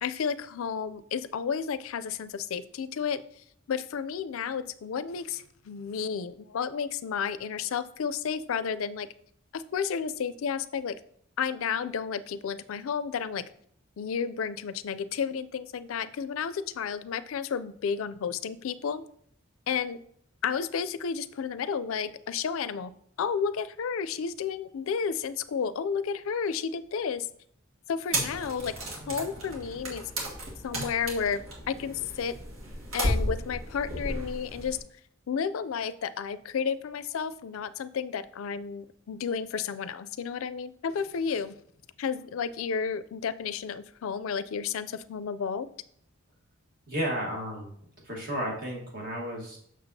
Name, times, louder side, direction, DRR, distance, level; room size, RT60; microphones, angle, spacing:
voice 1, 0.0-3.2 3.7-9.1 9.5-11.0 11.4-13.4 14.0-19.0 19.7-20.0 20.4-22.9 23.2-27.3 27.9-30.0 30.6-31.4 31.7-32.3 32.9-34.8 35.3-41.6 42.0-45.7, left 6 dB, 80° left, 14 dB, 0.4 m, -32 dB
sound 1, 28.1-34.8, equal, 80° right, 1.7 m, -34 dB
voice 2, 46.9-47.7 48.0-49.6, equal, 45° right, -1 dB, 1.4 m, -32 dB
7.0 x 6.3 x 2.7 m, 0.66 s
head